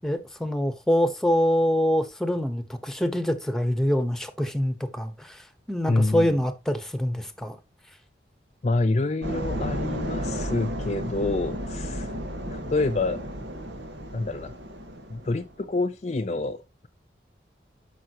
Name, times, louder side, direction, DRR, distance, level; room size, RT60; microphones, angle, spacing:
voice 1, 0.0-7.6, equal, 5° left, 1.0 m, -25 dB
voice 2, 5.9-6.3 8.6-12.1 12.5-13.2 14.1-14.5 15.1-16.9, left 2 dB, 40° left, 0.4 m, -27 dB
sound 1, 9.2-15.5, equal, 80° right, 2.0 m, -33 dB
12.5 x 5.6 x 2.9 m
head